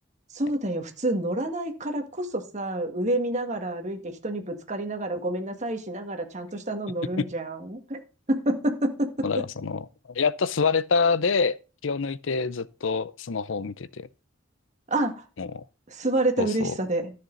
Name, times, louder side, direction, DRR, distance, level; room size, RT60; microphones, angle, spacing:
voice 1, 0.3-8.0 8.3-9.3 14.9-15.2 15.9-17.1, right 1 dB, 35° right, 1.9 m, -28 dB
voice 2, 9.2-11.6 11.8-14.1 15.4-15.6 16.4-16.7, left 5 dB, 85° left, 0.6 m, -26 dB
13.5 x 6.8 x 4.0 m
head